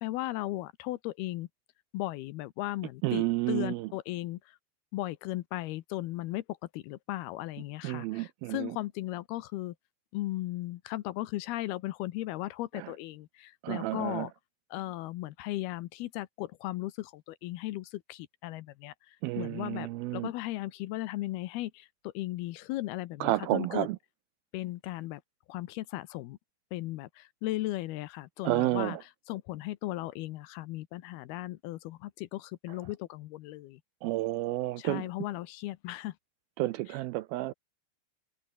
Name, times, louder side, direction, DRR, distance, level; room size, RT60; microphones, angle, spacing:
voice 1, 0.0-1.5 1.9-4.6 4.9-6.4 6.7-9.7 10.1-14.3 14.7-18.9 19.4-23.9 24.5-25.2 25.5-26.4 26.7-29.0 29.3-33.8 34.8-36.1, left 17 dB, 75° left, 2.6 m, -36 dB
voice 2, 3.0-3.9 7.8-8.8 12.7-12.9 13.6-14.3 19.2-20.3 23.2-24.0 28.4-29.0 32.7-32.8 34.0-35.1 36.6-37.5, right 17 dB, 80° right, 2.3 m, -31 dB
omnidirectional pair, 4.8 m